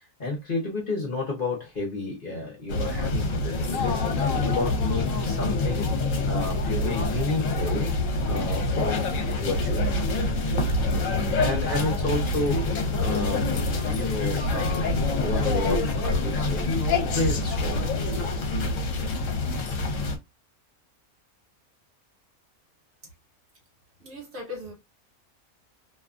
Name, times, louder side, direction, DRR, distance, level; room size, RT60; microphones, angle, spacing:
voice 1, 0.2-5.9 6.3-7.9 8.3-10.1 11.4-18.2, left 2 dB, 45° left, 0.8 m, -31 dB
sound 1, 2.7-20.2, left 2 dB, 65° left, 1.0 m, -26 dB
voice 2, 24.0-24.7, left 2 dB, 55° right, 1.2 m, -38 dB
2.6 x 2.3 x 2.4 m
omnidirectional pair, 1.5 m